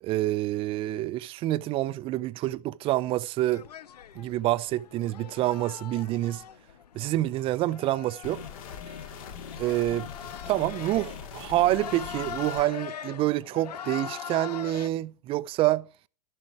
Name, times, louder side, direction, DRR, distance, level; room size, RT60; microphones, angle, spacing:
voice 1, 0.0-3.6 4.1-6.4 6.9-8.4 9.6-10.1 10.5-15.9, right 15 dB, 25° right, 0.5 m, -27 dB
sound 1, 3.5-14.9, left 9 dB, 85° left, 0.6 m, -42 dB
sound 2, 8.2-12.6, left 7 dB, 60° left, 2.1 m, -41 dB
12.0 x 7.6 x 4.7 m
hypercardioid pair, 125°, 20 cm